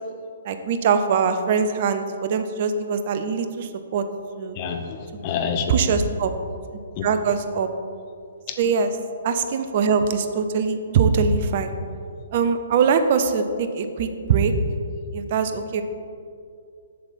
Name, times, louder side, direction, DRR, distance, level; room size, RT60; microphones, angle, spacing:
voice 1, 0.4-4.0 4.4-4.6 5.7-6.3 7.0-7.7 8.6-8.9 9.2-11.7 12.3-14.5 15.1-15.8, right 6 dB, 45° right, 8 dB, 0.6 m, -22 dB
voice 2, 4.5-5.7 7.0-7.1, left 6 dB, 35° left, 5 dB, 0.8 m, -27 dB
7.5 x 7.1 x 4.3 m, 2.4 s
figure-of-eight pair, 125°, 0 cm